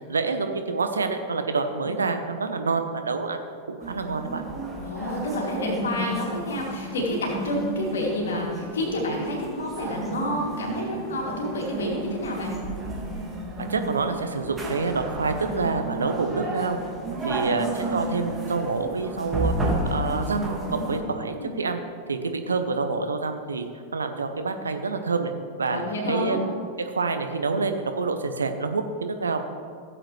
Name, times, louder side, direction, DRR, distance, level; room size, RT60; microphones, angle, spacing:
voice 1, 0.0-3.4 3.7-4.4 13.6-16.8 17.2-19.5 19.9-21.8 22.1-23.6 23.9-25.3 25.6-25.8 26.1-26.5 26.9-29.4, right 4 dB, 75° right, 7 dB, 0.8 m, -27 dB
sound 1, 3.8-21.0, right 1 dB, 15° right, 1.7 m, -32 dB
voice 2, 4.8-12.5 17.3-17.5 21.2-21.5 25.7-26.4, left 1 dB, 65° left, -2 dB, 2.6 m, -29 dB
15.5 x 7.7 x 3.2 m, 2.2 s
figure-of-eight pair, 90°, 0 cm